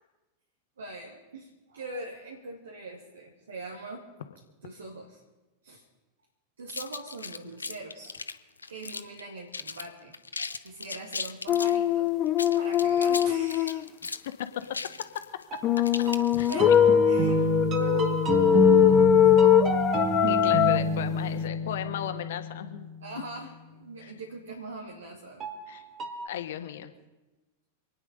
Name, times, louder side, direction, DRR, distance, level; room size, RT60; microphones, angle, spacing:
voice 1, 0.8-4.0 4.6-5.2 5.6-5.9 6.6-8.2 8.7-12.2 12.5-13.8 16.5-16.7 17.0-18.2 19.2-19.6 20.4-20.5 23.0-25.5, right 3 dB, 70° right, -1 dB, 2.3 m, -41 dB
sound 1, 6.7-9.2 9.5-9.9 10.1-11.8 12.3-16.8, left 4 dB, 75° left, 0.7 m, -37 dB
sound 2, 11.5-13.8 15.6-20.8, left 10 dB, 30° left, 0.7 m, -22 dB
voice 2, 15.5-15.8 16.3-16.5 20.2-22.9 24.0-24.1 25.7-25.8 26.2-26.9, left 10 dB, 55° left, 8 dB, 1.3 m, -36 dB
sound 3, 15.5-23.2 25.4-26.3, right 2 dB, 30° right, 2.0 m, -28 dB
27.0 x 9.9 x 5.4 m, 1.1 s
figure-of-eight pair, 90°, 0 cm